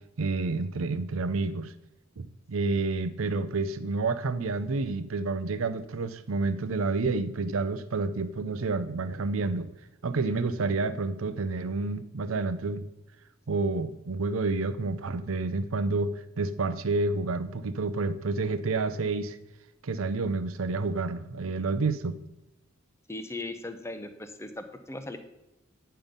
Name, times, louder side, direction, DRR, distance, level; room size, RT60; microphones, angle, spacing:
voice 1, 0.2-1.7 2.2-9.7 10.0-12.8 13.5-19.4 19.8-22.2, right 3 dB, 85° right, 13 dB, 0.6 m, -29 dB
voice 2, 23.1-25.2, left 2 dB, 15° left, 8 dB, 0.6 m, -38 dB
9.0 x 5.6 x 5.2 m, 0.93 s
head